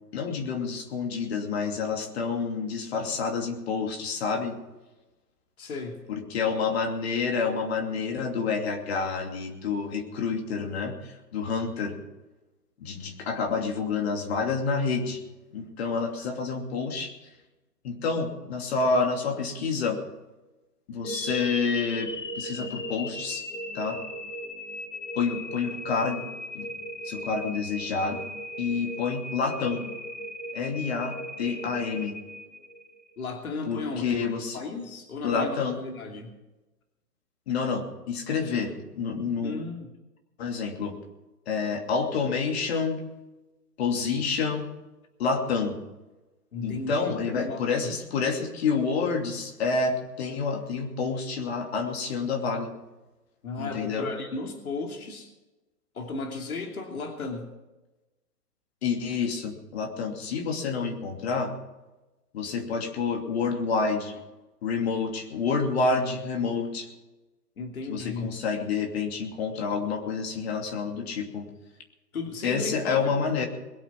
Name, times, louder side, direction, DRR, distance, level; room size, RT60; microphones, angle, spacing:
voice 1, 0.1-4.6 6.1-12.0 12.8-15.2 15.5-17.1 17.8-20.0 20.9-23.4 23.7-24.0 25.1-26.3 26.5-26.7 27.0-28.2 28.6-29.8 30.5-32.2 33.6-34.6 35.2-35.8 37.5-39.5 40.4-41.0 41.5-43.0 43.8-44.7 45.2-45.8 46.6-52.7 53.6-54.1 58.8-61.5 62.3-64.1 64.6-66.9 67.9-71.5 72.4-73.5, left 5 dB, 40° left, 3 dB, 2.8 m, -28 dB
voice 2, 5.6-6.0 33.2-36.3 39.4-39.9 46.5-47.9 53.4-55.3 55.9-57.5 67.6-68.3 72.1-73.5, left 3 dB, 60° left, 3 dB, 2.9 m, -35 dB
sound 1, 21.0-33.1, left 1 dB, 90° left, 1.8 m, -37 dB
21.5 x 8.4 x 6.0 m, 1.1 s
figure-of-eight pair, 135°, 48 cm